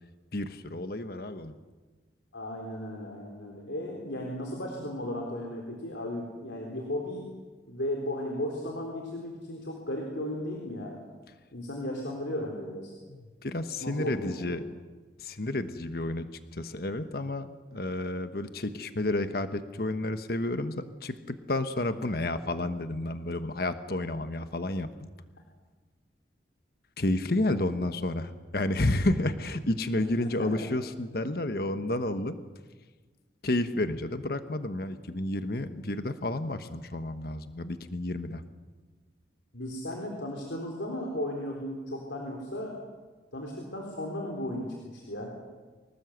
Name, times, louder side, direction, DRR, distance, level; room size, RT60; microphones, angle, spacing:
voice 1, 0.3-1.5 13.1-14.6 15.2-16.3 16.5-24.9 27.0-32.3 33.4-38.4, left 1 dB, 55° left, 10 dB, 1.2 m, -31 dB
voice 2, 2.3-7.2 7.7-11.0 11.5-12.9 13.8-14.5 27.3-27.5 39.5-42.7 43.3-45.3, left 1 dB, 85° left, 0 dB, 3.9 m, -35 dB
24.5 x 19.0 x 8.2 m, 1.3 s
head